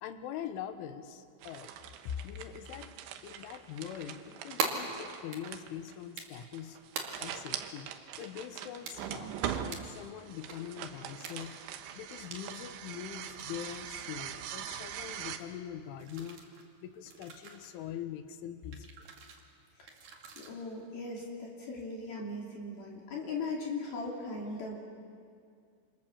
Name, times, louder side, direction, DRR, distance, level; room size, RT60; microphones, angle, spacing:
voice 1, 0.0-1.7 2.1-3.0 3.2-6.8 7.2-7.9 8.2-11.6 12.0-16.4 16.8-19.1, left 9 dB, 80° left, 9 dB, 3.6 m, -43 dB
sound 1, 1.4-15.4, right 9 dB, 75° right, 3.3 m, -42 dB
sound 2, 4.6-4.7 5.3-5.6 6.2-6.5 7.0-7.1 7.4-7.5 7.8-7.9 8.2-8.6 8.8-8.9 9.5-9.8 10.3-10.6 11.2-11.7 12.0-12.4 12.9-13.8 14.1-14.7 15.0-15.1 15.4-15.5 15.9-16.6 17.1-17.7 18.7-19.4 19.9-20.5, right 5 dB, 50° right, 3.5 m, -41 dB
voice 2, 20.4-24.8, left 3 dB, 55° left, -2 dB, 4.3 m, -38 dB
27.0 x 27.0 x 7.2 m, 2.3 s
omnidirectional pair, 5.7 m